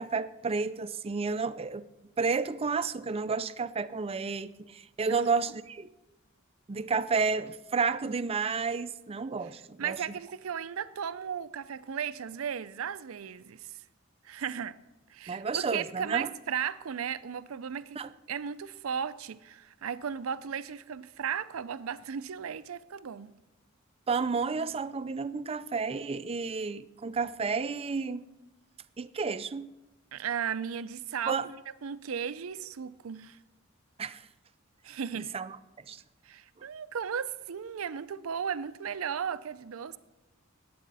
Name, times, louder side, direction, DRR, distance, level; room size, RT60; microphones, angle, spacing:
voice 1, 0.0-1.9 2.2-5.9 6.7-10.0 15.3-16.3 18.0-18.1 24.1-28.2 29.0-29.7 31.3-31.5 34.0-34.3 35.1-36.0, right 4 dB, 30° right, 0.4 m, -31 dB
voice 2, 9.8-13.8 14.2-14.8 15.1-18.0 18.3-23.3 30.1-33.4 34.8-35.3 36.2-40.0, right 7 dB, 90° right, 0.5 m, -35 dB
20.0 x 8.5 x 4.1 m
head